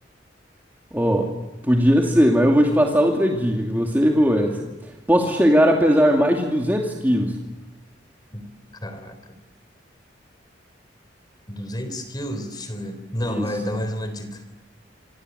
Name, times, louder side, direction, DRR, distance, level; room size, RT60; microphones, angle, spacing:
voice 1, 0.9-1.3 1.7-4.6 5.1-7.4 13.4-13.5, equal, 10° right, 0 dB, 2.6 m, -18 dB
voice 2, 8.8-9.2 11.5-14.4, equal, 25° left, 8 dB, 3.8 m, -30 dB
28.5 x 26.0 x 8.1 m, 1.1 s
head